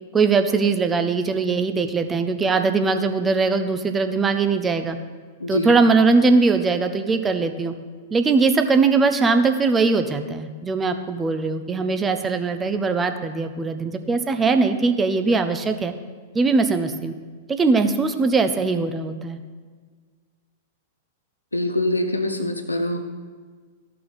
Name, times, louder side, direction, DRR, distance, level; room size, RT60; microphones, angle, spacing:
voice 1, 0.1-5.0 5.5-7.7 8.1-15.9 16.3-17.1 17.5-19.4, right 4 dB, 15° right, 8 dB, 0.7 m, -20 dB
voice 2, 5.4-5.7 21.5-23.0, left 1 dB, 85° left, 6 dB, 0.9 m, -24 dB
14.0 x 5.6 x 4.1 m, 1.5 s
figure-of-eight pair, 100°, 0 cm